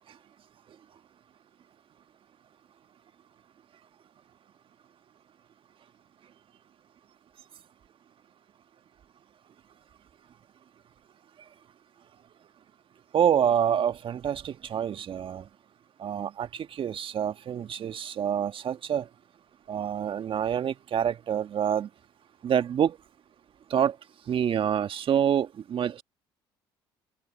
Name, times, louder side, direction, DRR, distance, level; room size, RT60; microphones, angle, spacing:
voice 1, 13.1-15.4 16.0-19.1 19.7-21.9 22.4-23.0 23.7-23.9 24.3-26.0, right 9 dB, 50° right, 1.7 m, -27 dB
hypercardioid pair, 60°, 12 cm